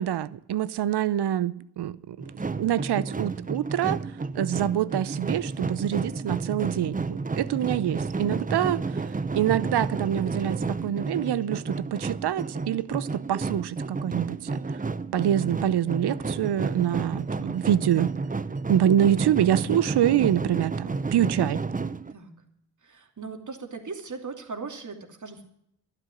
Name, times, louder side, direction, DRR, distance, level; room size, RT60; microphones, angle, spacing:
voice 1, 0.0-4.0 4.3-9.0 9.3-14.6 15.1-18.1 18.7-21.6, right 11 dB, 65° right, 0.8 m, -26 dB
sound 1, 2.2-22.1, right 4 dB, 20° right, 0.8 m, -31 dB
voice 2, 22.8-25.4, right 4 dB, 40° right, 2.8 m, -38 dB
11.5 x 10.0 x 9.9 m
hypercardioid pair, 40°, 44 cm